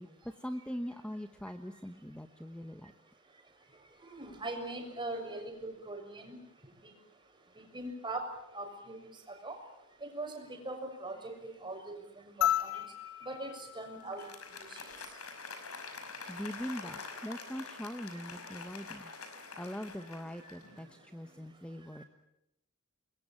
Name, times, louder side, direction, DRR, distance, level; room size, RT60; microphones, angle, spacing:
voice 1, 0.0-2.9 16.3-19.1 19.6-22.0, equal, 5° left, 7 dB, 1.1 m, -42 dB
voice 2, 4.0-6.4 6.8-6.9 7.5-8.3 8.5-9.6 10.0-12.9 13.2-14.3 14.6-15.2 20.4-20.6 21.9-22.0, right 2 dB, 20° right, 4 dB, 6.7 m, -42 dB
sound 1, 12.4-15.0 16.6-16.7, left 12 dB, 65° left, 1.3 m, -35 dB
Applause, 14.0-21.0, left 4 dB, 85° left, 5.6 m, -46 dB
29.0 x 22.0 x 9.1 m, 0.88 s
head